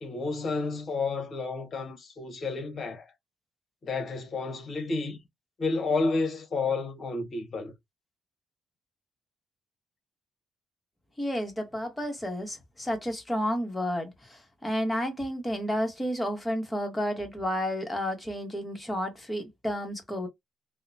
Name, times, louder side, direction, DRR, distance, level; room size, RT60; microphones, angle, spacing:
voice 1, 0.0-3.1 3.8-5.2 5.6-7.7, left 3 dB, 45° left, 0.9 m, -31 dB
voice 2, 11.2-20.3, equal, 10° left, 1.1 m, -31 dB
2.8 x 2.1 x 2.5 m
cardioid pair, 90°, 0 cm